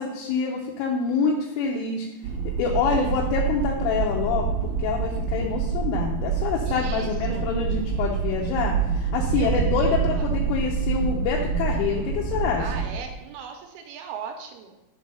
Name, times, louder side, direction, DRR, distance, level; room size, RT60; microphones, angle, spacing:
voice 1, 0.0-2.1 2.6-12.6, left 5 dB, 80° left, -2 dB, 3.2 m, -26 dB
sound 1, 2.2-13.1, right 5 dB, 60° right, 2.0 m, -27 dB
voice 2, 2.8-3.2 6.7-7.5 9.3-9.7 10.1-10.4 12.6-14.8, right 7 dB, 85° right, 4 dB, 3.0 m, -39 dB
6.8 x 5.5 x 5.5 m, 0.97 s
omnidirectional pair, 5.9 m